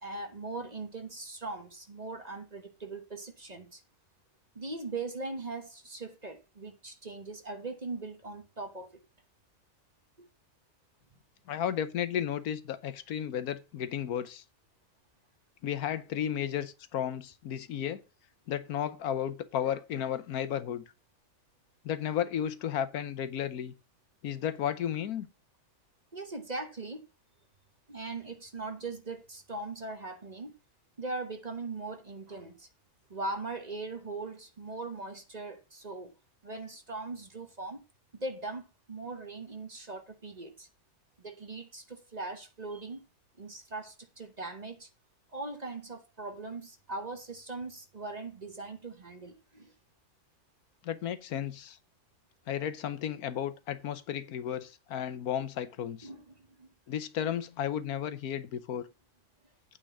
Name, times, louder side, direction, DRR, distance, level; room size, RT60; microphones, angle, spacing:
voice 1, 0.0-3.8 4.5-9.0 10.2-10.3 26.1-27.0 27.9-30.5 31.0-32.7 33.1-36.1 36.4-37.8 38.2-40.7 41.2-43.0 43.4-44.9 45.3-49.7 56.0-56.7, right 3 dB, 30° right, 1.2 m, -40 dB
voice 2, 11.5-14.4 15.6-18.0 18.5-20.8 21.8-23.7 24.2-25.3 50.8-51.8 52.5-56.1 56.9-58.9, left 9 dB, 80° left, 1.3 m, -33 dB
8.8 x 4.5 x 7.2 m
omnidirectional pair, 1.6 m